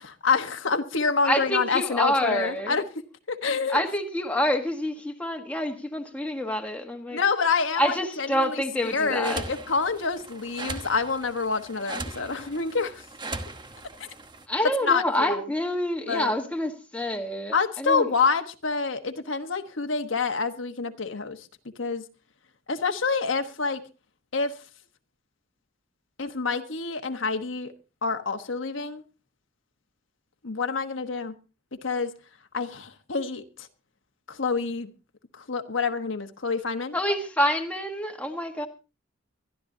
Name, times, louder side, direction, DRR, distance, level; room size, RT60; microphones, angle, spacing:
voice 1, 0.0-3.8 7.1-13.0 14.0-14.1 14.8-15.4 16.1-16.3 17.5-21.4 21.8-22.0 22.7-23.8 24.3-24.5 26.2-27.7 28.0-29.0 30.4-31.3 31.8-32.1 32.5-33.4 34.3-34.9 35.4-37.0, left 4 dB, 80° left, 1.3 m, -27 dB
voice 2, 1.2-2.8 3.7-7.2 7.8-9.4 14.5-18.1 36.9-38.7, equal, 5° left, 1.5 m, -27 dB
sound 1, 8.8-14.5, right 3 dB, 25° right, 1.1 m, -39 dB
23.0 x 12.5 x 2.7 m
head